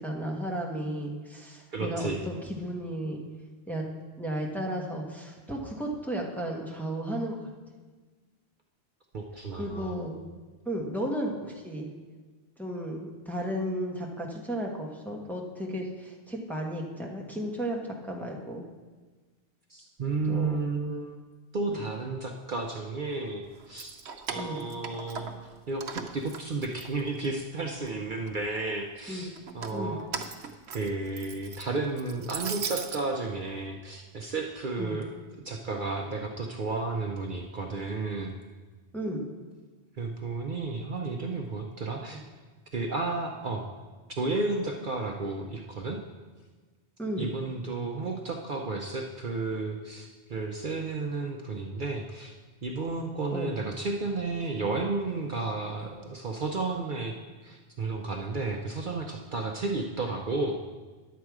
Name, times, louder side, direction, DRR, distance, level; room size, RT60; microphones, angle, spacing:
voice 1, 0.0-3.2 3.7-3.9 4.2-7.3 9.6-10.2 10.6-11.9 12.6-18.6 20.3-20.6 24.3-24.6 29.1-29.3 29.7-30.0 34.8-35.0 38.9-39.3 42.1-42.2 47.0-47.3 53.3-53.6, right 1 dB, ahead, -1 dB, 1.1 m, -34 dB
voice 2, 1.7-2.2 9.1-10.0 19.7-21.2 21.5-23.9 24.3-25.3 25.7-30.1 30.7-35.1 35.4-38.3 40.0-42.2 42.7-43.6 44.2-46.0 47.2-52.3 52.6-57.1 57.4-60.6, right 3 dB, 55° right, 2 dB, 0.8 m, -32 dB
Keys jangling, 23.6-25.5 25.8-27.4 27.8-28.6 29.4-33.0, right 6 dB, 85° right, 1.0 m, -38 dB
10.5 x 7.6 x 4.7 m, 1.4 s
omnidirectional pair, 1.1 m